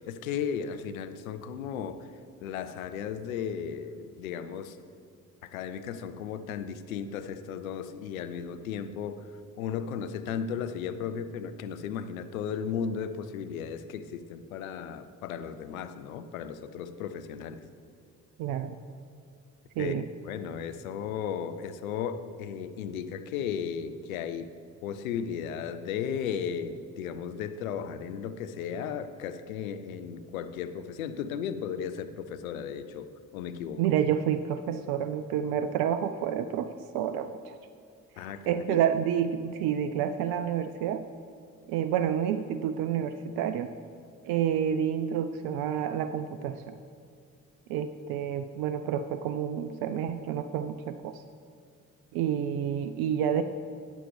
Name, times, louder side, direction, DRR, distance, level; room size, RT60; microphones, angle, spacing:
voice 1, 0.0-2.1 2.4-4.8 5.4-17.6 19.8-24.5 24.8-33.1 33.3-33.8 38.2-38.8, left 7 dB, 80° left, 10 dB, 0.6 m, -35 dB
voice 2, 18.4-18.8 19.8-20.0 33.8-37.6 38.5-41.0 41.7-43.7 44.2-46.8 47.7-51.2 52.1-53.4, right 9 dB, 60° right, 11 dB, 0.5 m, -29 dB
14.0 x 9.2 x 3.2 m, 2.4 s
figure-of-eight pair, 40°, 41 cm